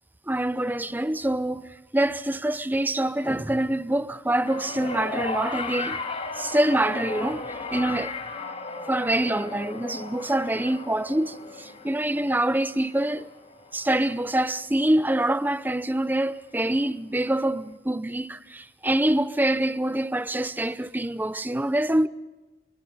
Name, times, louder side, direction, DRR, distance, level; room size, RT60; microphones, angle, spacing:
voice 1, 0.3-6.0 6.3-8.1 8.9-13.3 13.7-22.1, right 1 dB, 10° right, 0.6 m, -25 dB
sound 1, 4.4-14.8 15.8-15.9, left 3 dB, 35° left, 3.4 m, -36 dB
24.5 x 23.0 x 5.4 m
head